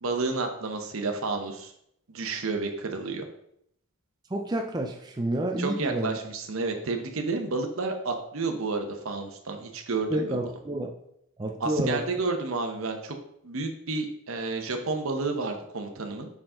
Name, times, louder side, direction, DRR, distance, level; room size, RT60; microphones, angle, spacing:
voice 1, 0.0-1.7 2.1-3.2 5.6-10.4 11.6-13.2 13.4-16.3, right 3 dB, 70° right, 5 dB, 0.9 m, -30 dB
voice 2, 4.3-6.2 10.1-10.9 11.4-12.0, right 1 dB, 20° right, 2 dB, 0.4 m, -29 dB
5.8 x 4.7 x 3.7 m, 0.73 s
head